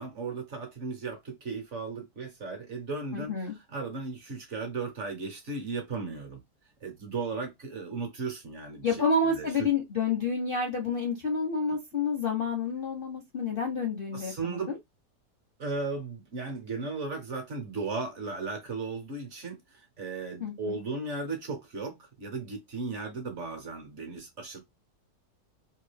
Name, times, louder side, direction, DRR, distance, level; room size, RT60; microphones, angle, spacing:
voice 1, 0.0-6.4 6.8-9.0 9.2-9.5 14.1-14.7 15.6-24.6, right 4 dB, 55° right, 1.0 m, -36 dB
voice 2, 3.1-3.5 8.8-14.8 20.4-20.8, left 4 dB, 55° left, 0.6 m, -29 dB
2.9 x 2.3 x 3.2 m
omnidirectional pair, 1.8 m